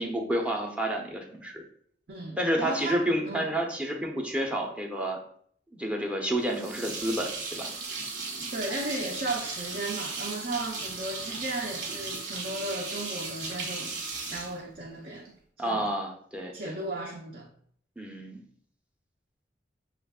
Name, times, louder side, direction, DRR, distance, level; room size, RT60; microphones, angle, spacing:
voice 1, 0.0-1.6 2.4-5.2 5.7-7.7 15.6-16.7 18.0-18.4, right 1 dB, 5° right, 0.5 m, -30 dB
voice 2, 2.1-3.5 8.5-13.9 14.3-15.3 15.6-15.9 16.5-17.5, right 2 dB, 55° right, 0.6 m, -35 dB
sound 1, 6.5-15.3, right 4 dB, 90° right, 1.1 m, -36 dB
6.0 x 2.4 x 3.5 m
head